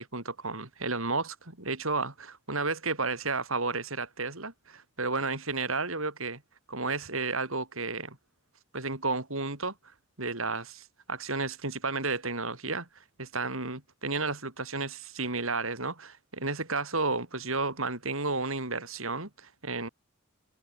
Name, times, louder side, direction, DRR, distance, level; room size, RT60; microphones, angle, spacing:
voice 1, 0.0-6.4 6.7-8.2 8.7-9.7 10.2-19.9, right 3 dB, 75° right, 5.8 m, -32 dB
head